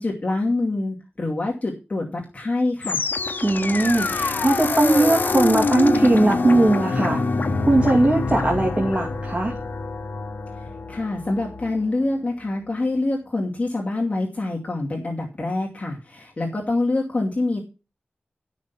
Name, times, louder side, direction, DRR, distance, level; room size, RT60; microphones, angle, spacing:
voice 1, 0.0-3.0 10.9-17.6, left 2 dB, 45° left, -1 dB, 2.5 m, -25 dB
sound 1, 2.8-12.0, left 3 dB, 65° left, 1.0 m, -25 dB
voice 2, 3.4-7.2 7.6-9.5, right 2 dB, 30° right, 0 dB, 2.3 m, -19 dB
12.0 x 6.3 x 5.9 m, 0.31 s
wide cardioid pair, 85°, 3 cm